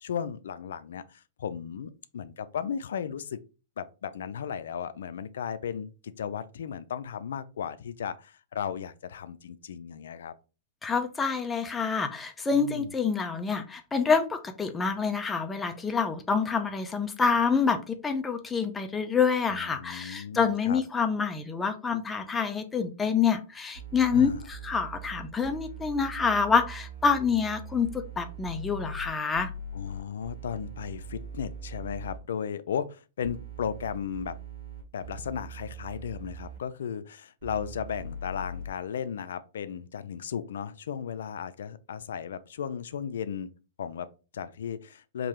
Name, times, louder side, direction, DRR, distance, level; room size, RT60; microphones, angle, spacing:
voice 1, 0.0-3.4 3.8-10.3 12.5-12.9 19.5-20.8 24.1-24.4 29.7-34.4 34.9-43.5 43.8-45.3, left 8 dB, 80° left, 0.4 m, -35 dB
voice 2, 10.8-29.5, left 5 dB, 10° left, 0.5 m, -27 dB
sound 1, 23.7-32.2 33.2-36.6 37.4-38.7, right 3 dB, 50° right, 1.7 m, -41 dB
3.7 x 2.7 x 3.1 m
hypercardioid pair, 145°, 0 cm